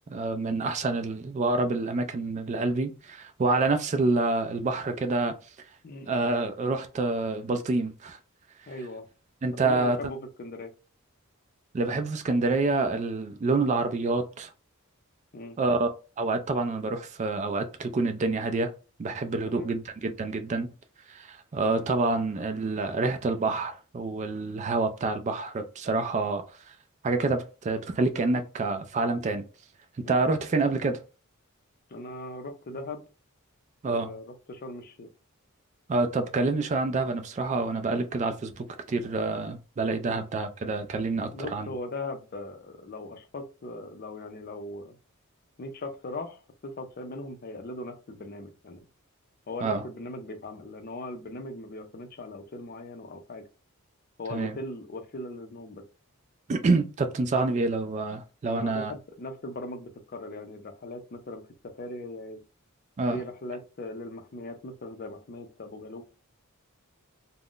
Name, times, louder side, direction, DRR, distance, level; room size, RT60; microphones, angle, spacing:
voice 1, 0.1-5.4 6.1-8.2 9.4-10.0 11.7-14.5 15.6-18.7 19.0-20.7 21.1-26.7 27.0-29.5 30.1-31.0 33.8-34.1 35.9-41.7 49.6-49.8 54.3-54.6 56.5-58.9 63.0-63.2, right 3 dB, 35° right, 0.3 m, -27 dB
voice 2, 5.8-6.2 8.7-9.1 9.5-10.7 15.3-15.6 19.4-19.7 30.0-30.2 31.9-33.0 33.8-35.1 40.0-40.2 41.3-45.0 45.6-48.8 49.5-53.4 54.2-55.8 58.4-62.4 63.1-66.0, left 2 dB, 45° left, 0.5 m, -39 dB
2.4 x 2.1 x 3.6 m
head